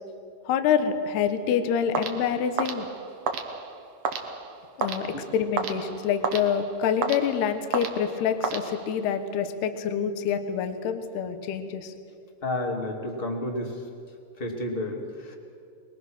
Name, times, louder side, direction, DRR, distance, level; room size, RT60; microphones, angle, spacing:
voice 1, 0.5-2.9 4.8-11.9, left 7 dB, 70° left, 9 dB, 3.1 m, -26 dB
sound 1, 1.9-9.2, right 5 dB, 65° right, 1.6 m, -33 dB
voice 2, 12.4-13.8 14.4-15.4, left 1 dB, 20° left, 2 dB, 1.4 m, -31 dB
27.0 x 21.5 x 6.3 m, 2.4 s
omnidirectional pair, 5.1 m